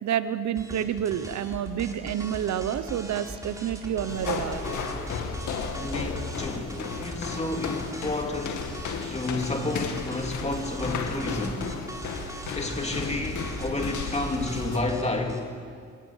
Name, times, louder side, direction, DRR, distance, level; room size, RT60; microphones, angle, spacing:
voice 1, 0.0-4.8, right 10 dB, 65° right, 1.1 m, -29 dB
sound 1, 0.5-15.4, right 1 dB, 10° right, 4.2 m, -39 dB
sound 2, 4.1-14.8, left 5 dB, 75° left, 2.3 m, -34 dB
voice 2, 5.8-8.7 9.0-11.7 12.5-15.5, left 2 dB, 20° left, 2.7 m, -30 dB
24.0 x 19.0 x 7.4 m
cardioid pair, 90°, 30 cm